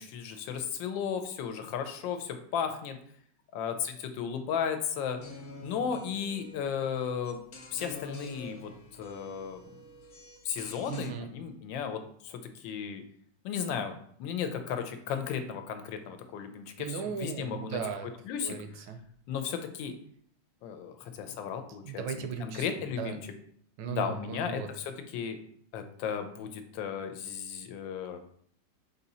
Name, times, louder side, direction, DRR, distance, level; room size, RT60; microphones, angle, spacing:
voice 1, 0.0-3.0 3.5-5.2 5.6-7.4 7.7-9.6 10.4-13.0 13.4-17.8 18.3-18.5 19.3-19.9 20.6-23.2 23.9-25.4 25.7-28.2, left 7 dB, 80° left, 7 dB, 1.3 m, -35 dB
sound 1, 5.2-11.1, left 2 dB, 60° left, 1.1 m, -47 dB
voice 2, 10.9-11.3 16.8-18.1 18.4-19.0 21.8-22.7 23.0-23.2 23.8-24.7, right 6 dB, 75° right, 7 dB, 1.2 m, -37 dB
4.1 x 2.8 x 4.1 m, 0.63 s
omnidirectional pair, 2.0 m